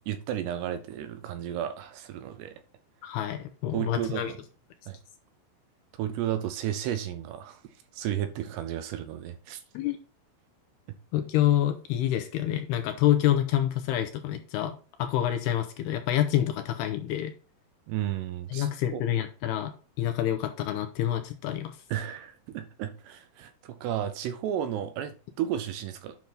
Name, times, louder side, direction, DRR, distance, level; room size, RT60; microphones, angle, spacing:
voice 1, 0.0-2.5 3.7-4.4 4.9-5.0 6.0-7.6 7.9-9.6 17.9-19.0 21.9-26.2, right 11 dB, 80° right, 2.5 m, -33 dB
voice 2, 3.0-4.3 9.7-10.0 11.1-17.3 18.5-21.8, left 12 dB, 80° left, 2.5 m, -27 dB
9.3 x 6.0 x 4.0 m
omnidirectional pair, 5.2 m